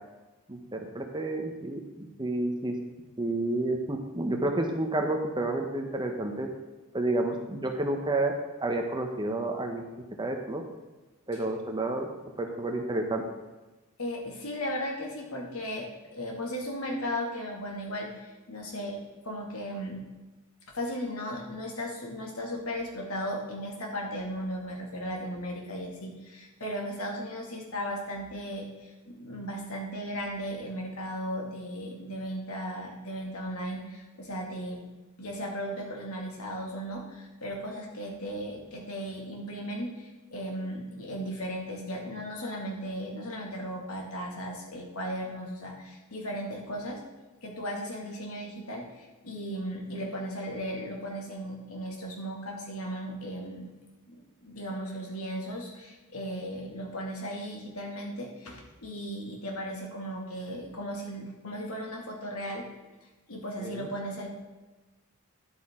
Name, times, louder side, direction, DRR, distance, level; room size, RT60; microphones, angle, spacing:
voice 1, 0.5-2.8 3.2-6.5 6.9-8.3 8.6-9.8 10.2-10.6 11.3-12.1 12.4-13.2 63.6-63.9, right 2 dB, 20° right, 3 dB, 0.9 m, -30 dB
voice 2, 14.0-19.0 19.2-20.0 20.7-34.9 35.2-47.0 47.4-53.7 54.1-62.6 63.3-64.3, equal, 70° left, 0 dB, 2.2 m, -36 dB
10.5 x 8.4 x 3.7 m, 1.2 s
head